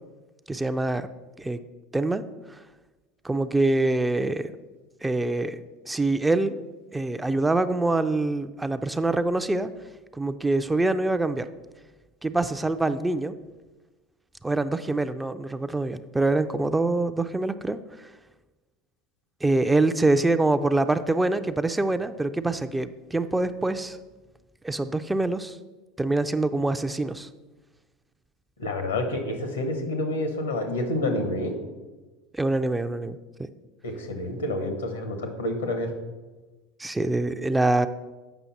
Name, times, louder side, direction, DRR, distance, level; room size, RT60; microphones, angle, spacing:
voice 1, 0.5-1.1 1.4-1.6 1.9-2.2 3.2-4.5 5.0-6.6 6.9-9.7 10.1-11.5 12.2-13.3 14.4-18.1 19.4-24.0 24.6-25.6 26.0-27.3 32.3-33.2 36.8-37.9, right 2 dB, 10° right, 10 dB, 0.4 m, -25 dB
voice 2, 28.6-31.5 33.8-35.9, left 1 dB, 85° left, 6 dB, 1.1 m, -28 dB
7.8 x 5.6 x 4.2 m, 1.2 s
hypercardioid pair, 80°, 0 cm